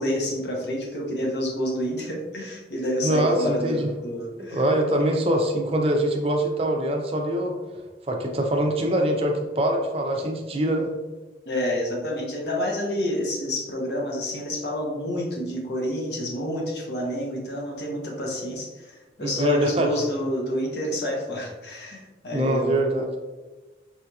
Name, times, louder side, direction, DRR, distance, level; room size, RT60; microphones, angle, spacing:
voice 1, 0.0-4.7 11.5-22.8, left 1 dB, 75° left, -1 dB, 0.8 m, -28 dB
voice 2, 3.0-3.9 4.4-7.5 8.1-10.9 19.2-19.9 22.3-23.1, right 1 dB, 35° right, 2 dB, 0.4 m, -24 dB
4.2 x 2.7 x 2.3 m, 1.2 s
head